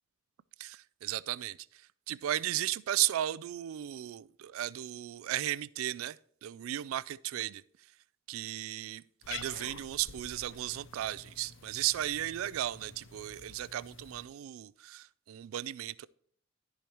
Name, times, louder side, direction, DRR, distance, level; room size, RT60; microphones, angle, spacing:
voice 1, 0.6-1.6 2.1-7.6 8.3-16.1, right 13 dB, 85° right, 0.3 m, -35 dB
Cat, 9.2-14.3, left 6 dB, 65° left, 0.6 m, -49 dB
13.5 x 5.0 x 3.0 m
head